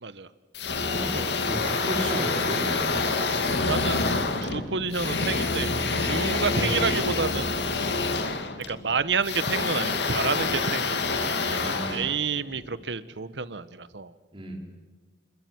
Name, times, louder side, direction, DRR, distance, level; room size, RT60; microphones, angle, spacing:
sound 1, 0.5-12.8, left 3 dB, 75° left, 2.4 m, -27 dB
voice 1, 1.4-3.0 6.5-6.8 11.4-12.0 14.3-14.5, equal, 30° right, 2 dB, 5.3 m, -34 dB
voice 2, 3.7-7.5 8.7-14.1, right 5 dB, 85° right, 15 dB, 1.1 m, -30 dB
27.5 x 22.0 x 9.4 m, 1.3 s
head